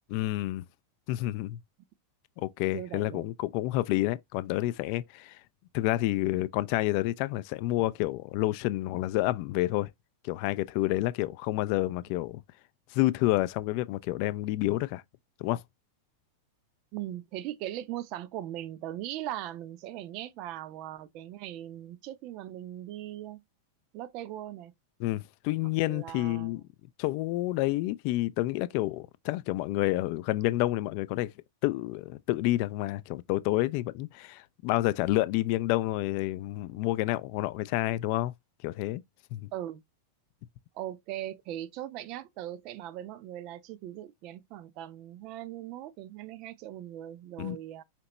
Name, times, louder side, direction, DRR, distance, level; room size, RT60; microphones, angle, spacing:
voice 1, 0.1-0.6 1.1-1.6 2.4-5.4 5.7-9.9 10.2-12.4 12.9-15.0 15.4-15.6 25.0-26.6 27.0-31.3 31.6-38.3 38.6-39.0 39.3-39.4 47.4-47.6, left 17 dB, 45° left, 0.3 m, -29 dB
voice 2, 2.7-3.3 16.9-23.4 23.9-24.7 25.9-26.5 39.5-39.8 40.7-47.8, right 13 dB, 40° right, 0.5 m, -39 dB
5.1 x 2.8 x 2.9 m
figure-of-eight pair, 90°, 0 cm